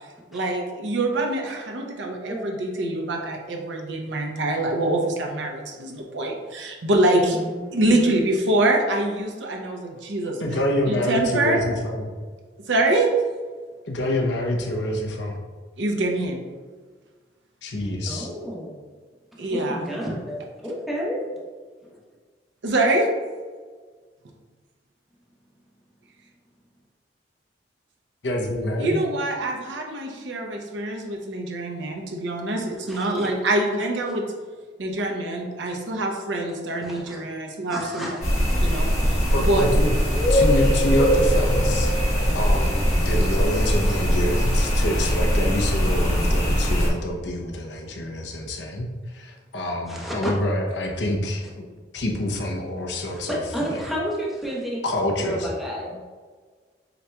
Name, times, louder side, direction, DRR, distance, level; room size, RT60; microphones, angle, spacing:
voice 1, 0.3-7.4 7.7-10.4 10.9-11.6 12.7-13.1 15.8-16.4 19.4-19.9 22.6-23.1 28.8-34.2 34.8-38.2 38.6-39.7, right 1 dB, 90° right, 1 dB, 0.6 m, -25 dB
voice 2, 6.9-8.1 18.1-18.8 19.4-21.2 21.8-22.0 32.9-33.3 36.8-37.2 37.7-38.4 49.9-50.5 53.0-54.8 55.1-56.0, equal, ahead, -5 dB, 0.9 m, -31 dB
voice 3, 10.4-12.1 13.9-15.4 17.6-18.3 28.2-29.0 39.3-40.0 40.3-41.9 42.3-51.6 51.9-53.4 54.8-55.5, left 1 dB, 70° left, 1 dB, 0.7 m, -26 dB
sound 1, 38.2-46.9, equal, 40° left, 1.1 m, -21 dB
7.7 x 2.9 x 2.2 m, 1.5 s
head